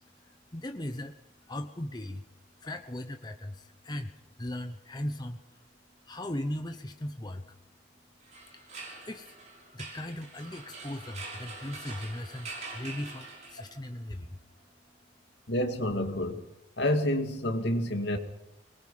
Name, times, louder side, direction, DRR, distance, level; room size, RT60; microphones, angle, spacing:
voice 1, 0.1-1.2 1.4-2.3 2.6-5.7 6.0-7.6 8.5-8.7 9.0-9.4 9.7-14.4, left 1 dB, 20° left, 7 dB, 0.9 m, -38 dB
sound 1, 8.2-13.9, right 3 dB, 40° right, 6.6 m, -44 dB
voice 2, 15.5-16.4 16.8-18.2, left 1 dB, 70° left, 5 dB, 2.4 m, -28 dB
24.0 x 21.0 x 5.6 m, 0.85 s
head